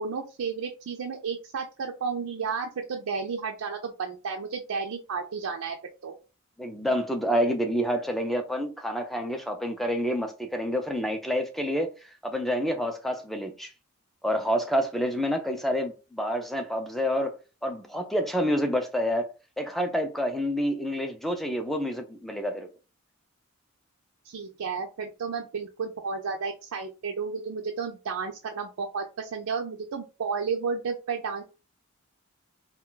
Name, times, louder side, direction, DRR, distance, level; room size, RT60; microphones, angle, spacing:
voice 1, 0.0-5.8 6.0-6.1 24.2-31.4, right 5 dB, 80° right, 0.4 m, -32 dB
voice 2, 6.6-11.9 12.2-13.7 14.2-17.3 17.6-19.3 19.6-22.7, equal, ahead, 0.3 m, -28 dB
2.2 x 2.2 x 3.8 m
head